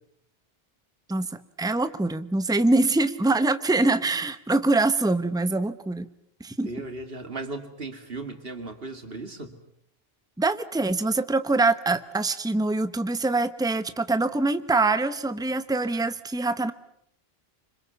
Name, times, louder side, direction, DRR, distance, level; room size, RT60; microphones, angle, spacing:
voice 1, 1.1-6.1 6.4-6.7 10.4-16.7, right 2 dB, 5° right, 12 dB, 0.9 m, -24 dB
voice 2, 6.6-9.6, right 3 dB, 65° right, 7 dB, 2.8 m, -36 dB
27.5 x 26.0 x 7.1 m, 0.68 s
omnidirectional pair, 1.1 m